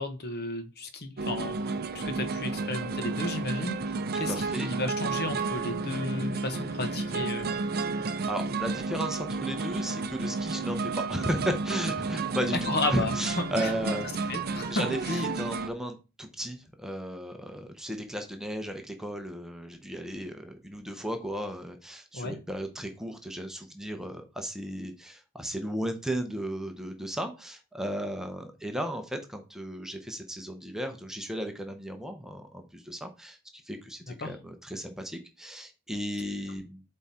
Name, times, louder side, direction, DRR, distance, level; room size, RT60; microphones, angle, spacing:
voice 1, 0.0-7.5 12.7-13.1 13.6-13.7 14.3-15.2 22.1-22.3 34.1-34.3, left 2 dB, 45° left, 7 dB, 1.1 m, -34 dB
sound 1, 1.2-15.7, right 4 dB, 45° right, 0.5 m, -32 dB
voice 2, 4.1-4.7 8.3-14.3 14.7-36.8, equal, ahead, 5 dB, 0.8 m, -35 dB
7.8 x 3.7 x 4.3 m, 0.31 s
head